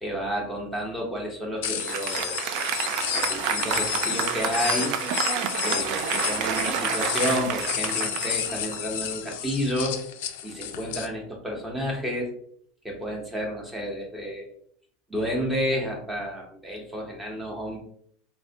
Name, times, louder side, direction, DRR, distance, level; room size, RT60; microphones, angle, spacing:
voice 1, 0.0-2.6 3.1-5.0 5.6-10.0 10.4-12.3 12.8-14.5 15.1-17.8, equal, 5° right, -1 dB, 0.8 m, -31 dB
sound 1, 1.6-11.1, left 9 dB, 75° left, 0.3 m, -31 dB
Applause, 1.6-9.3, right 8 dB, 55° right, 0.3 m, -29 dB
4.0 x 2.1 x 2.7 m, 0.64 s
supercardioid pair, 145°, 0 cm